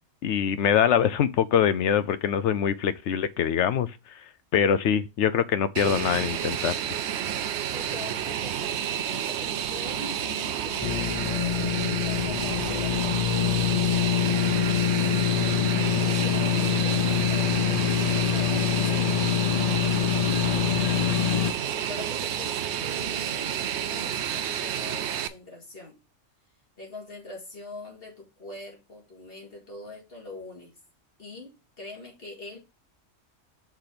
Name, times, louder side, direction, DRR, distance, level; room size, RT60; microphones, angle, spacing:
voice 1, 0.2-3.9 4.5-6.8, left 8 dB, 70° left, 0.8 m, -23 dB
Fixed-wing aircraft airplane, 5.8-25.3, right 9 dB, 65° right, 0.8 m, -30 dB
voice 2, 7.7-11.8 12.1-21.0 21.3-26.0 26.8-30.7 31.2-32.6, left 3 dB, 50° left, 2.6 m, -43 dB
sound 1, 10.8-21.5, left 10 dB, 90° left, 0.3 m, -25 dB
6.0 x 4.4 x 5.0 m
omnidirectional pair, 1.3 m